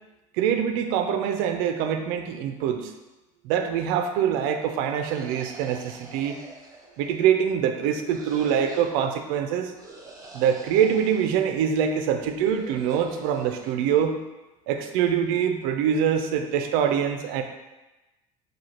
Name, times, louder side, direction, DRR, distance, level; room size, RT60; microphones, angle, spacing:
voice 1, 0.4-2.9 3.4-6.4 7.0-9.7 10.3-14.2 14.7-17.4, right 8 dB, 70° right, 7 dB, 0.5 m, -24 dB
sound 1, 5.1-7.4 8.0-8.9 9.7-11.4 12.2-13.7, right 2 dB, 20° right, 1.0 m, -45 dB
4.7 x 2.3 x 4.4 m, 1.1 s
hypercardioid pair, 80°, 18 cm